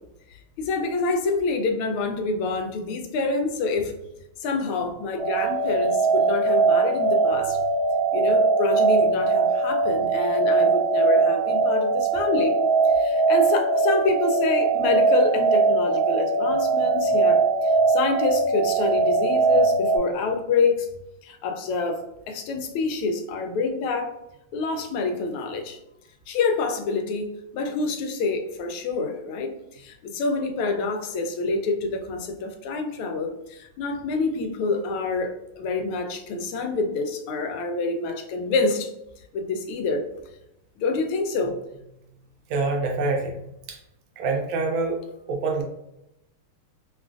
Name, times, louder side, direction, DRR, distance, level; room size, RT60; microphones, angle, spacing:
voice 1, 0.3-3.9 4.4-7.6 8.1-20.9 21.2-24.2 24.5-25.8 26.3-38.9 39.3-40.1 40.8-41.6, left 4 dB, 80° left, 5 dB, 1.4 m, -27 dB
sound 1, 5.2-20.0, right 4 dB, 60° right, 1.2 m, -21 dB
voice 2, 42.5-43.4 43.7-43.8 44.2-45.0 45.3-45.6, right 3 dB, 75° right, 1 dB, 1.3 m, -25 dB
3.7 x 2.3 x 2.4 m, 0.87 s
omnidirectional pair, 2.4 m